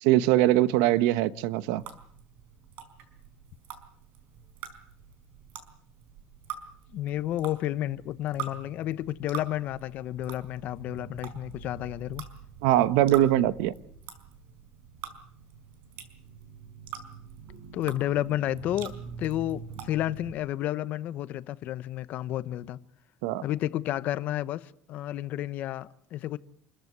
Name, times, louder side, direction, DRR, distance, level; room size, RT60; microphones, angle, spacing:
voice 1, 0.0-1.8 12.6-13.8 23.2-23.4, right 14 dB, 90° right, 1.1 m, -22 dB
sound 1, 1.8-20.3, right 8 dB, 60° right, 4.4 m, -44 dB
voice 2, 6.9-12.2 17.7-22.8 23.4-26.4, left 13 dB, 50° left, 1.0 m, -31 dB
28.0 x 14.5 x 9.6 m
cardioid pair, 150°, 3 cm